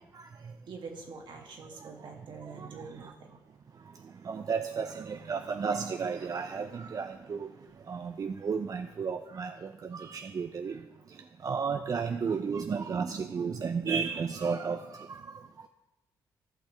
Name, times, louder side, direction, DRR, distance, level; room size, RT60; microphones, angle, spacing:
voice 1, 0.0-0.6 1.6-2.1 2.4-3.2 3.7-15.7, right 5 dB, 45° right, 8 dB, 0.5 m, -34 dB
voice 2, 0.7-3.4, right 4 dB, 65° right, 1 dB, 1.8 m, -45 dB
13.5 x 5.8 x 3.3 m, 1.0 s
supercardioid pair, 65°, 9 cm